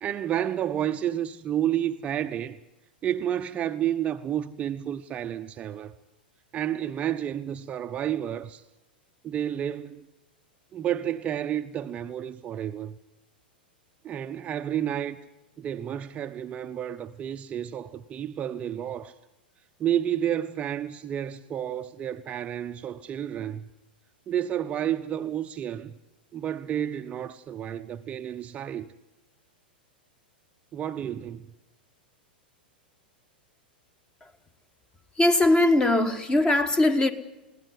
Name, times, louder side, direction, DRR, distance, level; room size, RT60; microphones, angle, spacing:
voice 1, 0.0-2.6 3.0-5.9 6.5-8.6 9.2-10.1 10.7-13.0 14.0-15.2 15.6-19.1 19.8-23.7 24.3-25.9 26.3-28.9 30.7-31.5, right 10 dB, 25° right, 0.7 m, -30 dB
voice 2, 35.2-37.1, left 2 dB, 15° left, 1.4 m, -21 dB
21.5 x 17.0 x 9.4 m
figure-of-eight pair, 95°, 5 cm